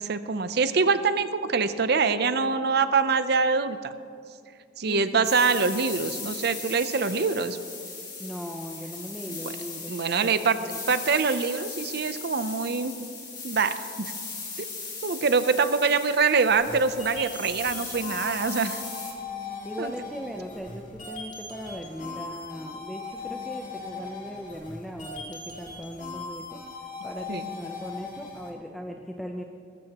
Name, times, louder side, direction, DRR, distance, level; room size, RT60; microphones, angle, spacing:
voice 1, 0.0-3.9 4.8-7.6 9.3-9.4 9.9-10.6 10.9-13.1 13.4-14.1 15.0-18.8 19.8-19.9 27.3-27.5, right 5 dB, 60° right, 12 dB, 0.6 m, -24 dB
voice 2, 4.8-5.3 8.2-9.9 10.2-10.8 19.6-29.4, equal, ahead, 1 dB, 0.6 m, -38 dB
sound 1, 5.2-19.1, left 4 dB, 25° left, 2.7 m, -38 dB
sound 2, 16.5-28.5, left 4 dB, 45° left, 2.4 m, -39 dB
20.5 x 14.0 x 3.0 m, 2.4 s
head